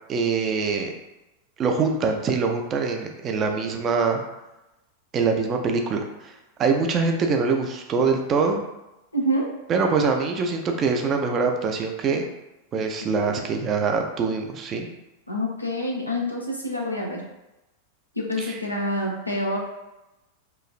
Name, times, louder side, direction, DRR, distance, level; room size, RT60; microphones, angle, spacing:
voice 1, 0.1-0.9 1.6-4.2 5.1-6.3 6.6-8.6 9.7-12.3 12.7-14.9 18.4-18.6, right 4 dB, 30° right, 3 dB, 0.4 m, -24 dB
voice 2, 9.1-9.5 13.2-13.4 15.3-17.2 18.2-19.6, equal, 85° left, -1 dB, 0.5 m, -27 dB
3.0 x 2.4 x 2.4 m, 0.95 s
figure-of-eight pair, 90°, 0 cm